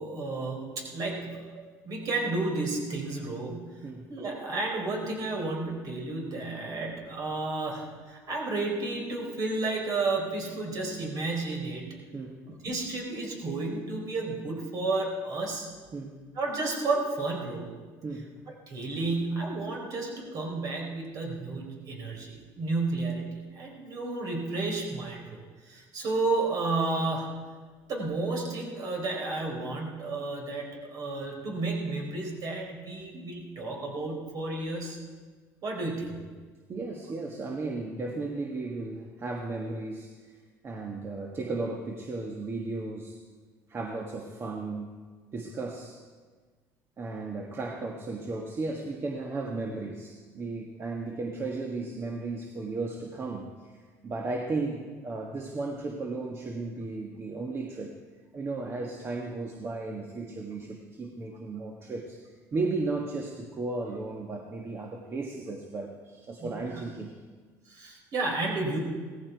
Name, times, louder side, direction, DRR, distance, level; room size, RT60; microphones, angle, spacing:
voice 1, 0.0-3.8 4.1-11.9 12.4-15.7 16.3-17.7 18.5-25.4 25.7-27.3 27.9-35.0 35.6-36.1 66.4-66.8 67.7-68.8, right 3 dB, 55° right, 0 dB, 4.3 m, -32 dB
voice 2, 36.7-43.2 43.7-45.0 45.3-46.0 47.0-58.0 58.3-62.2 62.5-67.1, right 3 dB, 35° right, 1 dB, 1.5 m, -35 dB
17.0 x 14.5 x 4.6 m, 1.5 s
cardioid pair, 105°, 7 cm